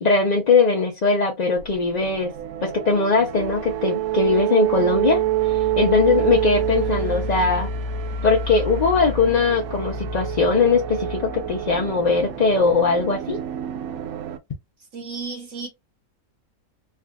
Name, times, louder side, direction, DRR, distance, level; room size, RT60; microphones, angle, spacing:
voice 1, 0.0-2.3 2.6-7.7 8.2-13.4, left 4 dB, 45° left, 0.5 m, -20 dB
sound 1, 1.6-14.4, right 8 dB, 90° right, 1.1 m, -27 dB
voice 2, 14.9-15.7, right 4 dB, 70° right, 1.7 m, -33 dB
3.4 x 2.4 x 2.2 m
omnidirectional pair, 1.4 m